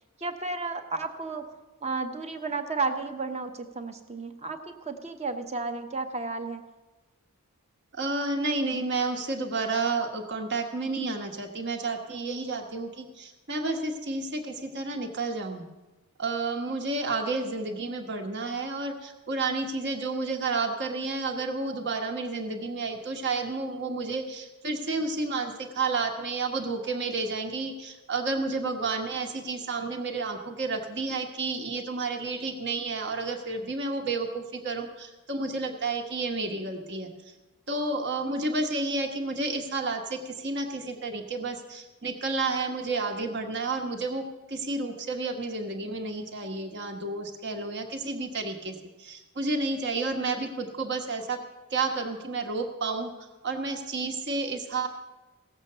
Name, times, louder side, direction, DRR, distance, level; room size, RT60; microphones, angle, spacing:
voice 1, 0.2-1.4 1.8-6.6, right 3 dB, 30° right, 7 dB, 0.9 m, -32 dB
voice 2, 7.9-15.7 16.2-37.1 37.7-51.4 51.7-53.1 53.4-54.9, right 3 dB, 50° right, 5 dB, 1.2 m, -31 dB
17.0 x 7.4 x 6.7 m, 1.1 s
head